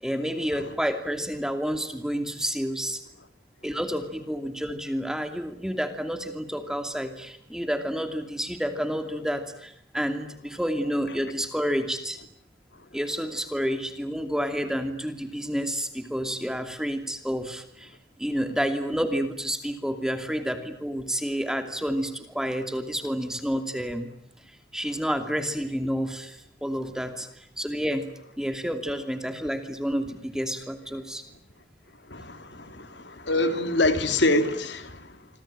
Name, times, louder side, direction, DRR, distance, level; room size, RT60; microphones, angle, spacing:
voice 1, 0.0-3.0 3.6-12.2 12.9-17.9 18.2-24.1 24.7-28.0 28.4-31.2, equal, 5° right, 2.7 m, -29 dB
voice 2, 32.1-35.3, left 2 dB, 85° left, 3.1 m, -26 dB
27.0 x 24.5 x 8.9 m
head